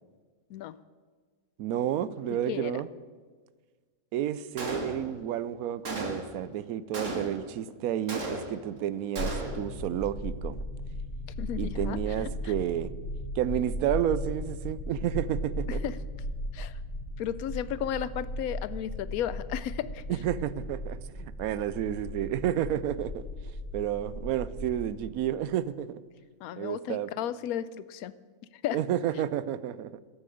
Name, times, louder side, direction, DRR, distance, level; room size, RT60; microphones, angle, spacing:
voice 1, 1.6-2.9 4.1-10.6 11.6-12.9 13.4-15.8 20.1-23.3 23.7-26.0 26.6-27.1 28.7-30.0, right 11 dB, 85° right, 17 dB, 1.0 m, -31 dB
voice 2, 2.3-2.8 11.4-12.0 12.4-12.5 15.7-16.0 16.5-16.8 17.2-20.0 26.4-28.1 28.6-28.8, left 10 dB, 85° left, 16 dB, 1.1 m, -34 dB
Gunshot gunfire, 4.6-5.3 5.9-6.4 6.9-7.6 8.1-8.8 9.2-9.7, right 1 dB, 60° right, 2.1 m, -35 dB
sound 1, 9.2-24.9, left 1 dB, 45° left, 1.9 m, -37 dB
12.0 x 8.8 x 6.9 m, 1.5 s
omnidirectional pair, 1.5 m